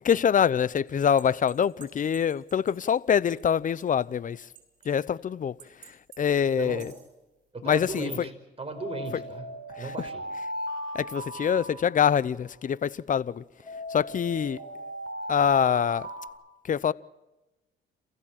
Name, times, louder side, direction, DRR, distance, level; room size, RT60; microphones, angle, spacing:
voice 1, 0.0-4.4 4.9-5.5 6.2-6.9 7.6-8.1 10.9-13.4 13.9-14.6 15.3-16.1 16.7-16.9, left 8 dB, 40° left, 0.7 m, -24 dB
sound 1, 1.0-2.9 3.3-3.4 3.8-3.9 4.5-5.0 5.6-6.2 6.6-7.0 8.7-12.5 13.6-16.3, equal, 60° right, 6.5 m, -37 dB
voice 2, 6.6-6.9 7.5-8.3 8.6-9.5 9.7-10.2, right 3 dB, 30° right, 4.8 m, -36 dB
28.0 x 15.0 x 7.4 m
cardioid pair, 90°, 20 cm